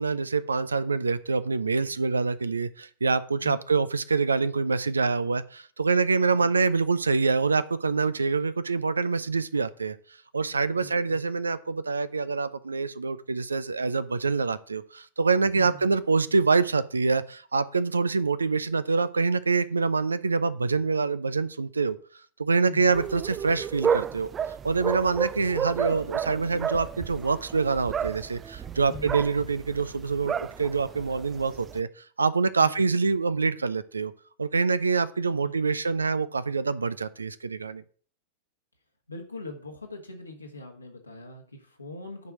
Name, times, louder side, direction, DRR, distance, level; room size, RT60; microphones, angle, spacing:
voice 1, 0.0-10.0 10.3-22.0 22.4-24.3 24.6-31.9 32.2-34.1 34.4-37.8, right 4 dB, 75° right, 15 dB, 0.5 m, -25 dB
voice 2, 10.7-11.4 15.5-15.8 22.6-23.0 28.9-29.3 32.6-32.8 35.4-35.7 39.1-42.3, left 2 dB, 85° left, 1 dB, 1.6 m, -42 dB
sound 1, 22.9-31.8, right 7 dB, 25° right, 0.4 m, -32 dB
9.6 x 4.7 x 6.0 m, 0.44 s
figure-of-eight pair, 90°, 0 cm